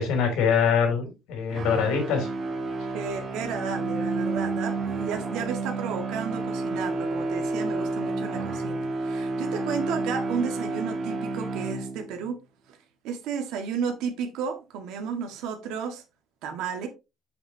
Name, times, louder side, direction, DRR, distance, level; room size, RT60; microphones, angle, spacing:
voice 1, 0.0-2.3, left 6 dB, 85° left, 3.3 m, -24 dB
sound 1, 1.5-12.3, right 3 dB, 35° right, 1.5 m, -30 dB
voice 2, 2.9-12.4 12.7-12.8 13.0-16.0 16.4-16.9, right 6 dB, 85° right, 1.8 m, -33 dB
7.9 x 6.2 x 2.8 m
cardioid pair, 170°, 0 cm